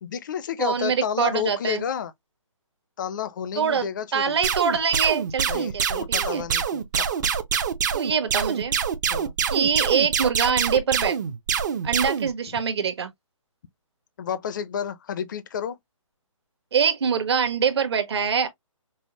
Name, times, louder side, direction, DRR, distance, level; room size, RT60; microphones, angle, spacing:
voice 1, 0.0-2.1 3.0-4.4 5.5-7.2 9.1-9.3 12.5-12.6 14.2-15.8, left 8 dB, 35° left, 0.5 m, -31 dB
voice 2, 0.6-1.8 3.6-6.4 7.9-8.8 9.5-11.2 11.8-13.1 16.7-18.5, right 6 dB, 50° right, 1.1 m, -24 dB
sound 1, 4.4-12.3, right 7 dB, 35° right, 0.6 m, -25 dB
5.3 x 2.0 x 2.9 m
hypercardioid pair, 160°, 17 cm